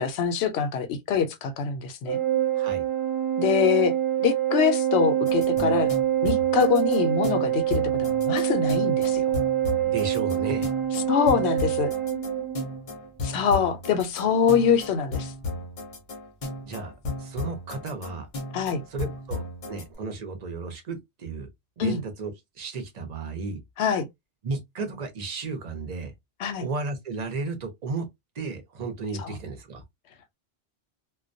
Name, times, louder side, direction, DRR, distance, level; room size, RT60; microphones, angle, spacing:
voice 1, 0.0-2.2 3.4-3.9 4.2-5.9 6.2-9.3 11.1-11.9 13.2-15.3 18.5-18.8 21.8-22.0 23.8-24.1 26.4-26.7 29.2-29.4, left 7 dB, 80° left, 0.8 m, -24 dB
Organ, 2.1-12.8, right 11 dB, 75° right, 0.8 m, -25 dB
sound 1, 5.3-19.9, left 3 dB, 50° left, 0.8 m, -35 dB
voice 2, 9.8-10.7 16.6-16.9 17.2-18.3 18.9-21.5 21.8-23.6 24.4-26.1 26.6-28.1 28.4-29.8, right 4 dB, 45° right, 0.7 m, -33 dB
2.3 x 2.1 x 2.5 m
omnidirectional pair, 1.1 m